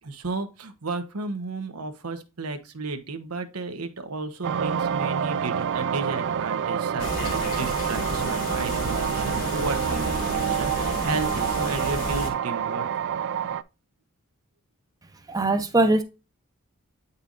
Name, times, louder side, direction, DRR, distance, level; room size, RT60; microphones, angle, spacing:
voice 1, 0.0-12.9, right 3 dB, 90° right, 1.0 m, -33 dB
sound 1, 4.4-13.6, right 8 dB, 55° right, 0.4 m, -27 dB
sound 2, 7.0-12.3, left 2 dB, 75° left, 2.4 m, -32 dB
voice 2, 15.3-16.0, right 2 dB, 15° right, 0.7 m, -21 dB
8.5 x 5.4 x 2.5 m
head